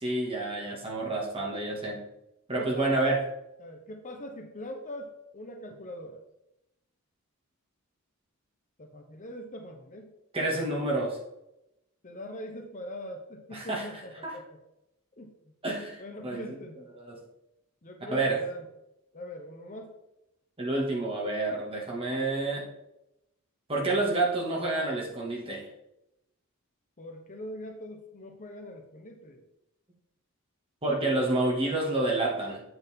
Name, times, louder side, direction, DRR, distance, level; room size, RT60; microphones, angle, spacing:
voice 1, 0.0-2.0 2.5-3.2 10.3-11.2 13.5-13.9 14.2-14.3 15.6-16.6 17.0-17.2 18.1-18.4 20.6-22.7 23.7-25.7 30.8-32.6, right 2 dB, 25° right, -2 dB, 2.0 m, -29 dB
voice 2, 2.6-3.2 3.6-6.2 8.8-10.1 12.0-14.6 15.2-15.5 16.0-16.8 17.8-18.7 19.1-20.0 27.0-29.4, left 1 dB, 35° left, 3 dB, 1.0 m, -42 dB
8.0 x 7.4 x 3.6 m, 0.87 s
head